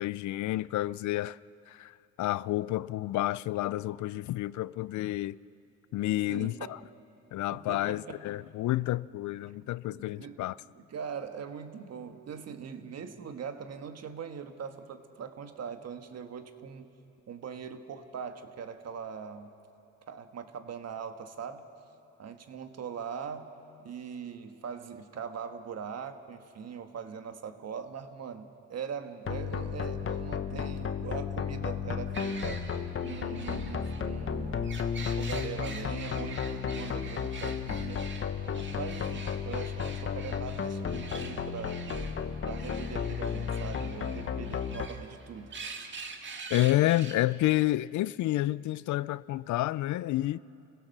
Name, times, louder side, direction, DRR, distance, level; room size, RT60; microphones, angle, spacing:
voice 1, 0.0-1.4 1.7-5.4 5.9-6.8 7.3-10.6 46.5-50.4, left 16 dB, 70° left, 0.5 m, -29 dB
voice 2, 6.3-6.8 7.5-8.2 9.9-10.4 10.8-16.9 17.3-19.5 20.1-21.6 22.2-23.5 23.8-32.6 33.0-34.7 35.0-38.1 38.5-42.1 42.4-45.5, right 7 dB, 55° right, 1.5 m, -41 dB
sound 1, 29.3-44.9, left 7 dB, 45° left, 1.3 m, -34 dB
sound 2, 32.1-47.6, right 4 dB, 40° right, 1.8 m, -46 dB
29.5 x 16.5 x 6.7 m
cardioid pair, 90°, 30 cm